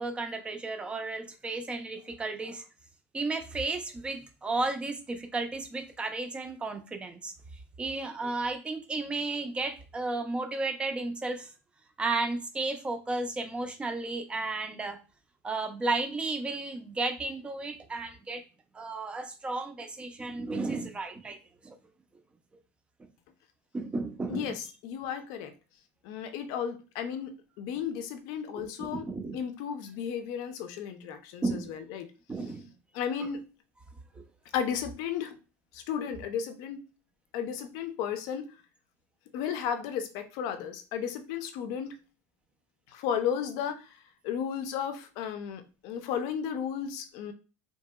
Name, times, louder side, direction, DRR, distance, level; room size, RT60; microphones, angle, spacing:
voice 1, 0.0-2.6 3.1-7.3 7.8-11.5 12.0-15.0 15.4-18.4 18.7-21.4 21.6-21.8 23.7-24.5 28.6-29.4 31.4-31.7 32.3-32.7 34.1-34.2, right 3 dB, 15° right, 7 dB, 0.5 m, -33 dB
voice 2, 24.3-25.5 26.0-29.1 29.3-32.1 32.9-33.4 34.5-35.4 35.7-36.8 37.3-38.5 39.3-41.9 42.9-47.3, left 8 dB, 70° left, 7 dB, 0.5 m, -34 dB
2.8 x 2.7 x 2.2 m, 0.33 s
supercardioid pair, 125°, 7 cm